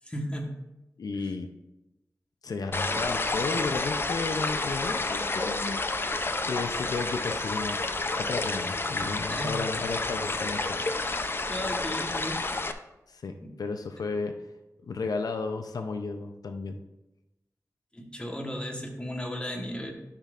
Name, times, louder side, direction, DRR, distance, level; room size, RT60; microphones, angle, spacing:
voice 1, 0.0-0.5 9.3-9.6 11.5-12.4 13.4-13.5 17.9-19.9, equal, 15° left, 1 dB, 1.2 m, -35 dB
voice 2, 1.0-1.5 2.4-5.8 6.4-7.8 8.2-11.0 13.1-13.3 13.6-14.3 14.8-16.8, left 4 dB, 85° left, 6 dB, 0.5 m, -33 dB
sound 1, 2.7-12.7, left 3 dB, 35° left, 0.5 m, -30 dB
12.5 x 5.8 x 2.5 m, 0.96 s
wide cardioid pair, 110°, 6 cm